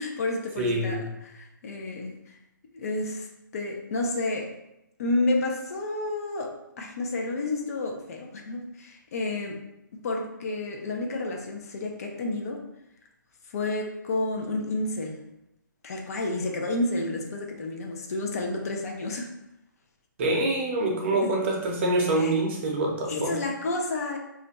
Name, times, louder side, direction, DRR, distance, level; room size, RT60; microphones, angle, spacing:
voice 1, 0.0-2.4 2.7-3.3 3.5-4.6 5.0-9.6 9.9-12.7 13.5-15.2 15.8-19.4 21.2-21.3 22.2-22.4 23.1-24.2, left 2 dB, 50° left, 1 dB, 0.5 m, -30 dB
voice 2, 0.6-1.1 20.2-23.4, right 2 dB, 35° right, -1 dB, 0.6 m, -25 dB
2.5 x 2.1 x 4.0 m, 0.86 s
hypercardioid pair, 160°, 11 cm